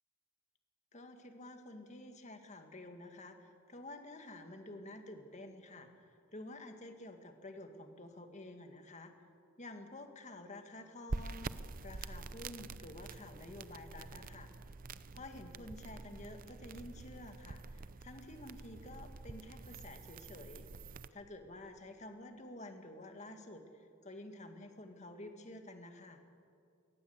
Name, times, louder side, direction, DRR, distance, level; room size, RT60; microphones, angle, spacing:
voice 1, 0.9-9.1 9.6-11.5 11.8-14.5 15.1-20.7 21.1-26.2, left 1 dB, 35° left, 6 dB, 1.9 m, -50 dB
sound 1, 11.1-21.1, right 3 dB, 45° right, 0.6 m, -46 dB
22.0 x 18.0 x 8.0 m, 2.4 s
head